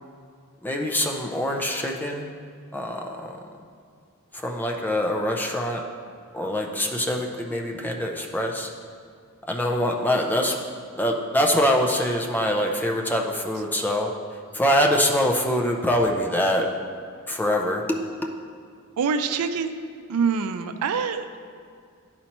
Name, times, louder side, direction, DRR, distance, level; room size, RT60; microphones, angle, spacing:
voice 1, 0.6-2.3 2.7-3.4 4.3-5.8 6.3-8.7 9.5-10.6 11.0-14.1 14.5-16.7 17.3-18.0, equal, 10° left, 1 dB, 0.5 m, -24 dB
voice 2, 19.0-19.7 20.1-21.4, right 5 dB, 90° right, 9 dB, 0.4 m, -25 dB
11.5 x 4.2 x 3.0 m, 2.2 s
head